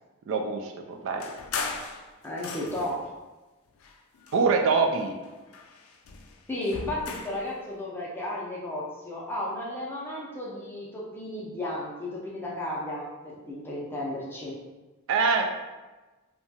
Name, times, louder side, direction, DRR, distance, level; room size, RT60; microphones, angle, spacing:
voice 1, 0.3-1.2 4.3-5.1 15.1-15.5, right 4 dB, 65° right, 4 dB, 0.3 m, -24 dB
sound 1, 1.2-3.1 3.8-4.9 5.2-7.5, left 4 dB, 70° left, 0.3 m, -38 dB
voice 2, 2.2-3.0 6.5-14.6, left 1 dB, 10° left, -5 dB, 0.5 m, -34 dB
2.8 x 2.2 x 2.7 m, 1.2 s
head